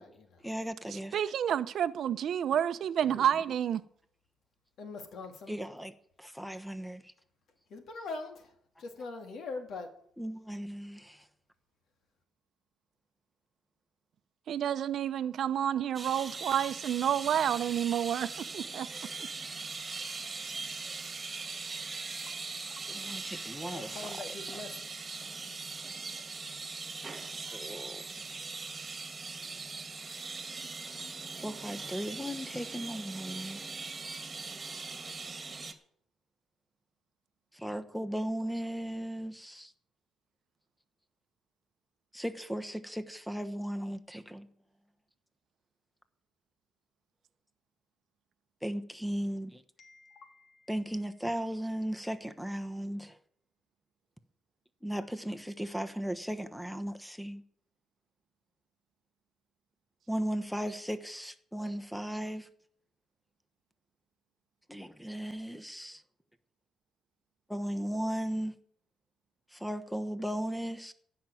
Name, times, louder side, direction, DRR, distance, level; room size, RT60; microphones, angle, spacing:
voice 1, 0.4-1.3 3.0-3.2 5.5-7.1 10.2-11.3 22.9-24.2 27.5-28.5 31.4-33.6 37.5-39.7 42.1-44.5 48.6-49.6 50.7-53.2 54.8-57.4 60.1-62.5 64.7-66.0 67.5-68.5 69.5-70.9, equal, ahead, 1.1 m, -36 dB
voice 2, 1.1-3.8 14.5-18.9, right 9 dB, 65° right, 0.7 m, -29 dB
voice 3, 4.8-5.6 7.7-8.5 8.8-9.9 22.3-22.4 23.6-24.9 27.4-27.6 49.8-50.7, left 3 dB, 70° left, 2.7 m, -43 dB
sound 1, 15.9-35.7, right 4 dB, 30° right, 1.8 m, -40 dB
15.5 x 6.0 x 9.2 m
cardioid pair, 90°, 0 cm